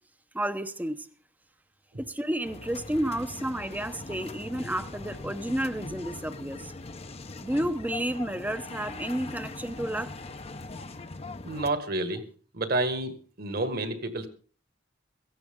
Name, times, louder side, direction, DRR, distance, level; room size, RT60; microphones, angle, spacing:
voice 1, 0.3-1.1 2.0-6.7 7.4-10.1, right 1 dB, 10° right, 0.8 m, -31 dB
sound 1, 2.4-11.7, left 2 dB, 30° left, 0.8 m, -41 dB
voice 2, 11.4-12.2 12.5-14.3, right 2 dB, 55° right, 1.9 m, -29 dB
17.0 x 15.0 x 3.8 m
head